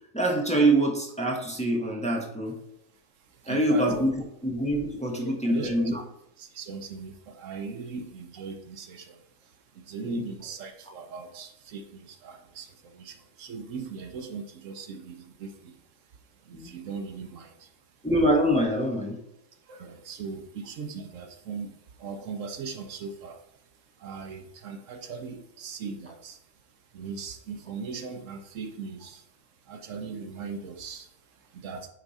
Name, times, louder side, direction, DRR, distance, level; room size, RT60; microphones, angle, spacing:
voice 1, 0.1-2.5 3.5-4.1 4.4-6.0 10.0-10.3 16.5-16.7 18.0-19.2, right 1 dB, 5° left, -1 dB, 1.1 m, -25 dB
voice 2, 3.2-3.9 5.2-5.9 6.4-15.8 16.4-17.7 19.6-23.6 24.0-26.4 26.9-29.3 29.6-31.9, right 5 dB, 75° right, 7 dB, 1.0 m, -39 dB
8.9 x 3.5 x 4.1 m, 0.81 s
omnidirectional pair, 1.4 m